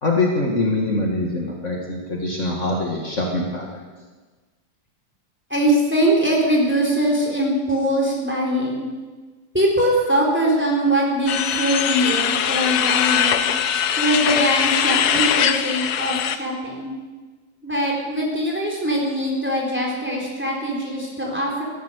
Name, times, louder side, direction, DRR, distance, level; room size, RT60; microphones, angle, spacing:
voice 1, 0.0-3.8, left 2 dB, 45° left, -1 dB, 2.2 m, -23 dB
voice 2, 5.5-8.8 9.5-13.4 14.0-16.9 17.6-21.6, right 1 dB, 5° right, -2 dB, 3.8 m, -22 dB
sound 1, 11.3-16.4, left 9 dB, 75° left, 1.3 m, -21 dB
15.0 x 11.5 x 8.1 m, 1.3 s
omnidirectional pair, 1.8 m